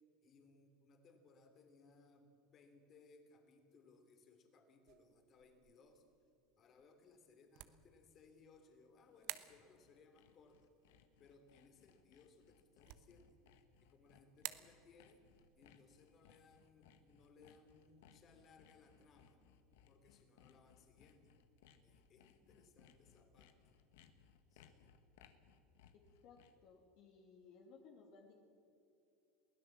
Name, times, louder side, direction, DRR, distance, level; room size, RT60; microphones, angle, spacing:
voice 1, 0.2-6.1 6.6-10.7 11.2-13.4 13.8-15.2 15.6-19.5 19.9-21.4 21.8-23.6 24.5-24.8, left 4 dB, 35° left, 6 dB, 3.1 m, -66 dB
sound 1, 4.9-19.0, right 17 dB, 65° right, 1.1 m, -57 dB
Sawing, 8.9-26.7, left 8 dB, 80° left, 1.7 m, -68 dB
voice 2, 25.9-28.5, left 5 dB, 55° left, 2 dB, 2.5 m, -61 dB
22.5 x 16.5 x 7.4 m, 2.7 s
supercardioid pair, 135°, 0 cm